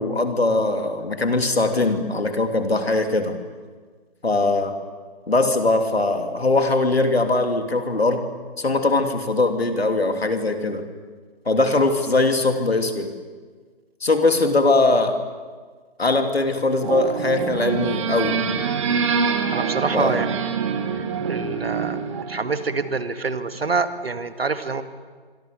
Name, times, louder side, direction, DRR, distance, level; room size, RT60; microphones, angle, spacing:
voice 1, 0.0-3.4 4.2-4.8 5.3-8.3 8.6-10.9 11.4-13.1 14.0-15.2 16.0-18.4 19.9-20.2, left 2 dB, 75° left, 6 dB, 3.3 m, -21 dB
sound 1, 16.8-23.0, right 6 dB, 30° right, 2.1 m, -25 dB
voice 2, 19.5-20.5 21.0-24.8, right 4 dB, 70° right, 10 dB, 2.1 m, -26 dB
26.0 x 25.0 x 6.9 m, 1.5 s
figure-of-eight pair, 145°, 31 cm